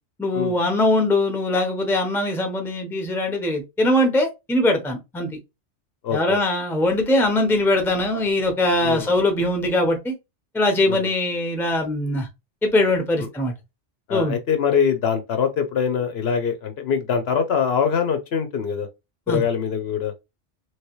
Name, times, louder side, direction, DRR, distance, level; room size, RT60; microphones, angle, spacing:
voice 1, 0.2-5.3 6.1-10.1 10.5-12.3 12.6-13.5 14.1-14.3 19.3-19.4, left 1 dB, 5° left, 0.6 m, -21 dB
voice 2, 6.0-6.4 8.8-9.1 10.9-11.0 13.2-13.3 14.1-18.9 19.3-20.1, left 7 dB, 65° left, 0.8 m, -23 dB
3.1 x 2.9 x 3.0 m
omnidirectional pair, 1.2 m